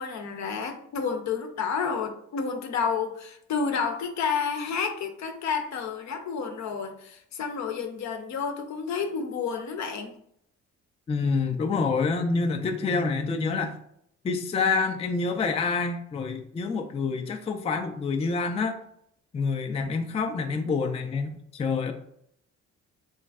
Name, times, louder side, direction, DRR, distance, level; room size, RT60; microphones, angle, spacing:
voice 1, 0.0-10.1, left 5 dB, 65° left, 5 dB, 0.7 m, -30 dB
voice 2, 11.1-13.7 14.2-18.8 19.3-21.9, left 4 dB, 20° left, 5 dB, 0.3 m, -27 dB
3.4 x 3.1 x 2.3 m, 0.69 s
cardioid pair, 90°, 30 cm